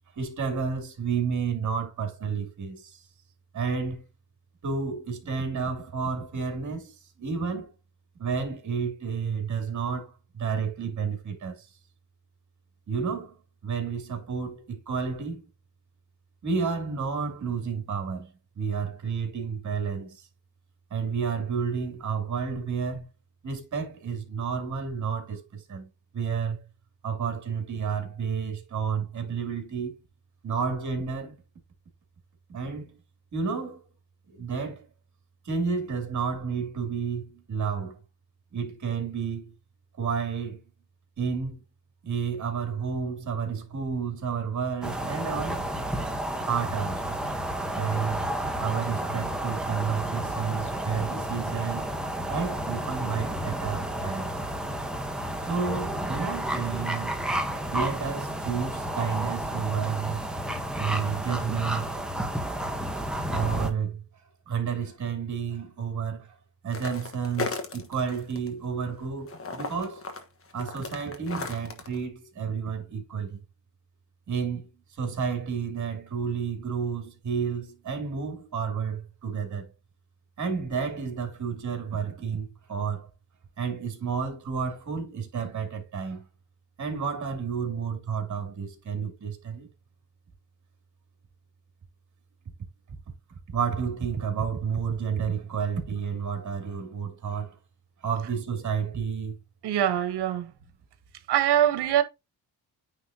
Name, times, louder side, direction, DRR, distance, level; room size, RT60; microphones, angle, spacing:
voice 1, 0.1-3.1 3.5-4.0 4.6-7.7 8.2-11.7 12.9-13.4 13.6-15.5 16.4-20.3 20.9-23.1 23.4-26.6 27.0-30.0 30.4-31.4 32.5-33.0 33.3-33.8 34.3-34.9 35.4-38.0 38.5-39.5 40.0-40.6 41.2-41.6 42.0-45.7 46.5-47.2 47.7-48.3 48.6-51.9 52.3-54.3 55.4-57.2 57.7-60.3 60.8-62.0 63.3-66.4 66.6-70.1 70.5-73.4 74.3-79.7 80.4-83.1 83.6-86.3 86.8-89.7 93.5-97.6 98.0-99.4, right 6 dB, 45° right, 2.5 m, -31 dB
sound 1, 44.8-63.7, right 1 dB, ahead, 1.0 m, -31 dB
sound 2, 66.7-68.5 68.8-72.0, left 4 dB, 35° left, 1.3 m, -35 dB
voice 2, 99.6-100.5 101.3-102.0, right 11 dB, 80° right, 1.2 m, -23 dB
9.3 x 3.8 x 2.7 m
cardioid pair, 120°, 39 cm